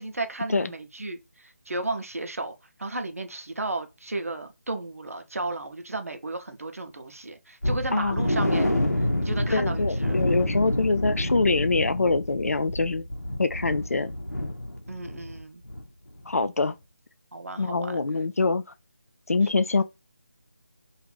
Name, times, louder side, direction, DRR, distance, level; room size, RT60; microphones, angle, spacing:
voice 1, 0.0-2.5 2.8-8.7 9.2-10.2 14.9-15.6 17.3-18.0, right 2 dB, 65° right, 0.7 m, -33 dB
sound 1, 7.6-15.4 15.6-15.8 16.2-16.3, left 1 dB, 90° left, 0.7 m, -28 dB
voice 2, 7.9-8.2 9.5-13.1 13.4-14.1 16.3-16.7 17.6-18.6 19.3-19.8, left 3 dB, 70° left, 0.4 m, -24 dB
2.5 x 2.4 x 3.2 m
figure-of-eight pair, 155°, 8 cm